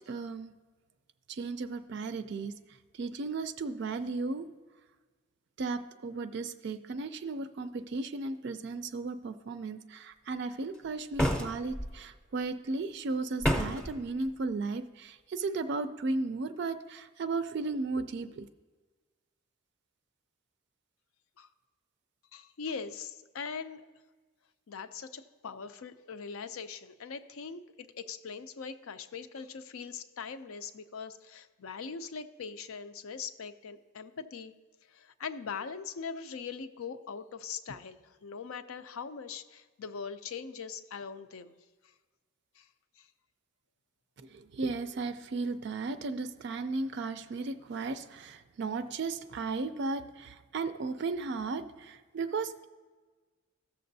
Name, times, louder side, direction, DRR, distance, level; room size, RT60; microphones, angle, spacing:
voice 1, 0.1-0.5 1.3-2.6 2.9-4.5 5.6-18.5 44.2-52.6, right 3 dB, 55° right, 10 dB, 0.4 m, -35 dB
sound 1, 11.2-11.9 13.4-13.9, equal, 5° left, 0.6 m, -28 dB
voice 2, 22.3-23.9 24.7-34.5 34.9-41.5 42.6-42.7, left 5 dB, 80° left, 11 dB, 0.5 m, -41 dB
15.0 x 6.7 x 2.7 m, 1.4 s
head